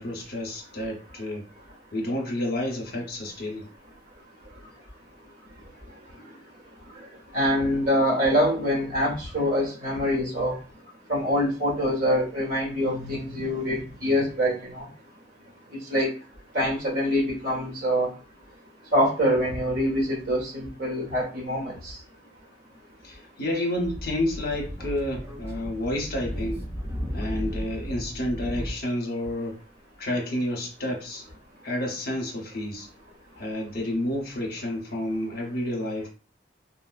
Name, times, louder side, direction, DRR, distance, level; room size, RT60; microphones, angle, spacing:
voice 1, 0.0-1.4 1.9-3.6 23.0-26.6 27.1-29.5 30.0-31.2 31.6-32.9 33.4-36.1, left 1 dB, 55° left, 1 dB, 0.8 m, -30 dB
voice 2, 7.3-10.6 11.1-14.8 15.9-16.1 16.5-18.1 18.9-21.7, equal, 55° right, -2 dB, 1.5 m, -25 dB
Speech / Wind, 23.8-28.7, equal, 15° right, 0.7 m, -34 dB
4.0 x 2.0 x 2.4 m, 0.34 s
head